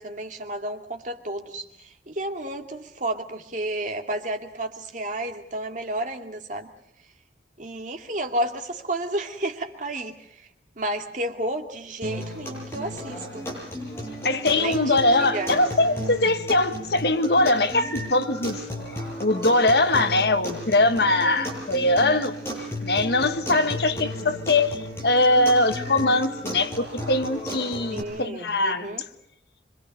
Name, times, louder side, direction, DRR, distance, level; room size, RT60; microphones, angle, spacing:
voice 1, 0.0-6.7 7.6-10.5 10.8-13.5 14.5-15.5 27.9-29.0, right 1 dB, 45° right, 4 dB, 2.3 m, -31 dB
sound 1, 12.0-28.0, equal, 15° left, 7.6 m, -34 dB
voice 2, 14.2-18.6 19.2-22.3 22.8-28.9, left 2 dB, 60° left, 9 dB, 1.4 m, -22 dB
26.0 x 24.5 x 6.6 m, 0.71 s
head